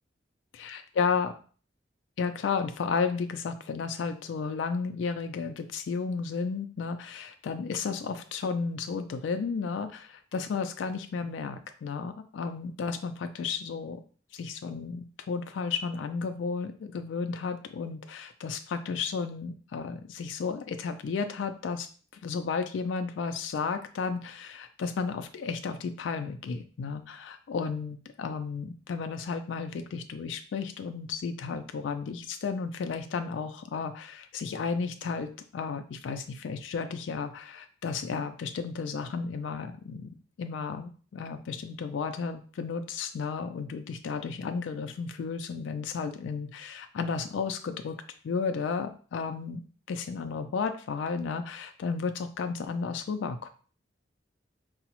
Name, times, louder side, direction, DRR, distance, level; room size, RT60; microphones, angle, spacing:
voice 1, 0.5-1.3 2.2-14.0 14.3-21.9 22.2-48.0 48.2-49.6 49.9-53.5, left 5 dB, 90° left, 8 dB, 0.3 m, -33 dB
4.7 x 2.0 x 2.9 m, 0.41 s
head